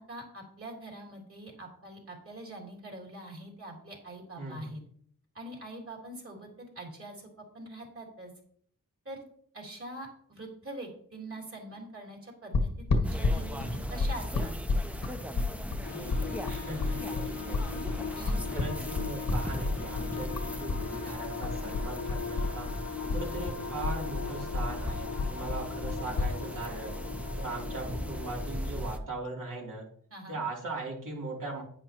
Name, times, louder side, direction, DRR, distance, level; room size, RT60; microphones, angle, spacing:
voice 1, 0.0-4.8 5.3-7.3 7.5-8.3 9.1-9.2 9.5-14.5 18.1-18.4 30.1-30.4, right 1 dB, 40° right, -1 dB, 3.4 m, -44 dB
voice 2, 4.4-4.7 15.9-17.8 18.5-22.7 23.1-26.9 27.4-29.9 30.3-31.6, right 2 dB, 70° right, -3 dB, 3.2 m, -39 dB
sound 1, 12.5-20.8 21.1-22.8 23.1-26.3, left 3 dB, 85° left, 1.5 m, -30 dB
sound 2, 13.0-29.0, equal, 5° right, 0.7 m, -38 dB
sound 3, 15.8-28.8, left 6 dB, 60° left, 0.9 m, -40 dB
10.5 x 9.8 x 3.0 m, 0.62 s
wide cardioid pair, 115°, 33 cm